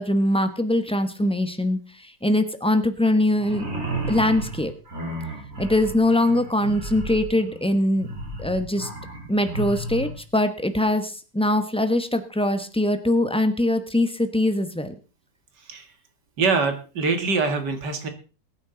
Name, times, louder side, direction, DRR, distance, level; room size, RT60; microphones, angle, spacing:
voice 1, 0.0-1.8 2.2-3.6 4.1-4.7 5.6-8.1 8.4-8.9 9.3-14.9, left 1 dB, 5° left, 9 dB, 0.7 m, -22 dB
sound 1, 3.4-10.2, right 2 dB, 45° right, 4.2 m, -33 dB
voice 2, 15.6-15.9 16.4-18.1, right 4 dB, 65° right, 7 dB, 2.4 m, -24 dB
21.0 x 9.1 x 3.9 m, 0.34 s
omnidirectional pair, 1.9 m